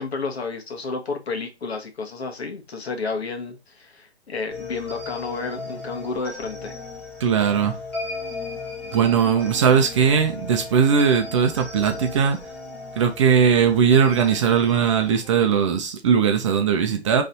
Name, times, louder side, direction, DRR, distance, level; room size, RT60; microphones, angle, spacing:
voice 1, 0.0-6.8, left 4 dB, 65° left, 1.4 m, -31 dB
sound 1, 4.5-15.7, left 3 dB, 5° left, 0.9 m, -36 dB
voice 2, 7.2-7.8 8.9-12.4 13.0-17.2, right 7 dB, 30° right, 0.6 m, -19 dB
4.0 x 3.3 x 4.0 m
figure-of-eight pair, 135°, 34 cm